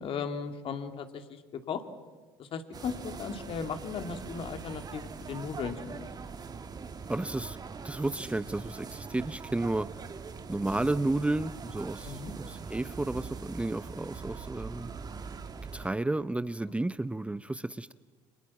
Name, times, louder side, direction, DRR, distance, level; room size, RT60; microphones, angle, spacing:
voice 1, 0.0-1.8 2.4-6.1 12.0-12.3, left 6 dB, 50° left, 7 dB, 2.7 m, -37 dB
sound 1, 2.7-15.9, right 5 dB, 35° right, 1.9 m, -42 dB
voice 2, 7.1-7.6 7.8-10.0 10.5-14.9 15.7-17.9, right 2 dB, 10° right, 14 dB, 0.8 m, -32 dB
29.5 x 26.5 x 7.4 m, 1.3 s
hypercardioid pair, 60°, 12 cm